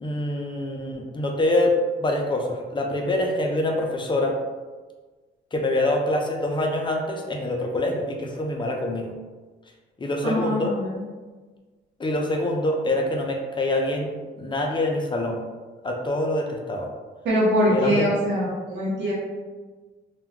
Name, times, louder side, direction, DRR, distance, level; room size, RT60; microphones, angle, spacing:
voice 1, 0.0-4.3 5.5-9.1 10.0-10.7 12.0-14.1 14.4-15.4 15.8-16.9 17.7-18.1, left 1 dB, 25° left, 1 dB, 0.5 m, -25 dB
voice 2, 10.2-11.0 17.2-19.1, equal, 65° right, -7 dB, 0.8 m, -23 dB
2.2 x 2.1 x 3.5 m, 1.3 s
cardioid pair, 90°, 20 cm